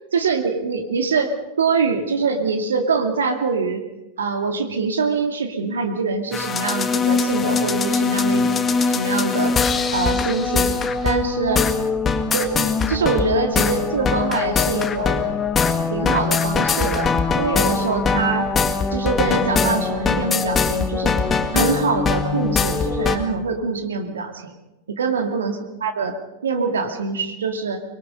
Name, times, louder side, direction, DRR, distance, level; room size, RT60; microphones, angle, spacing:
voice 1, 0.1-3.8 4.2-8.5 8.9-9.6 9.9-11.7 12.3-15.3 15.9-18.5 18.9-21.2 21.5-24.6 24.9-26.2 26.4-27.8, right 4 dB, 70° right, 6 dB, 2.2 m, -24 dB
sound 1, 6.3-23.2, left 5 dB, 20° left, 1.9 m, -21 dB
24.5 x 22.0 x 5.3 m, 1.0 s
figure-of-eight pair, 90°, 0 cm